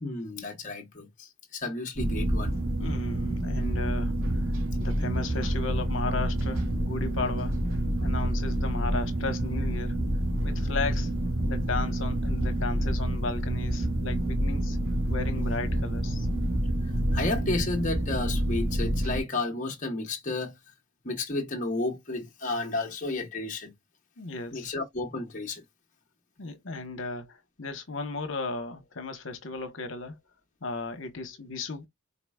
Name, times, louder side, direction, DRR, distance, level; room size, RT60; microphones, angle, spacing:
voice 1, 0.0-2.5 17.1-20.5 21.0-23.7 24.5-25.6, left 2 dB, 35° left, 1.1 m, -32 dB
sound 1, 2.0-19.2, right 1 dB, 70° right, 2.1 m, -28 dB
voice 2, 2.8-4.1 4.8-7.6 8.0-10.0 10.4-11.1 11.4-14.8 15.1-16.3 24.2-24.7 26.4-30.2 30.6-31.9, left 3 dB, 60° left, 1.1 m, -35 dB
4.8 x 4.1 x 2.3 m
head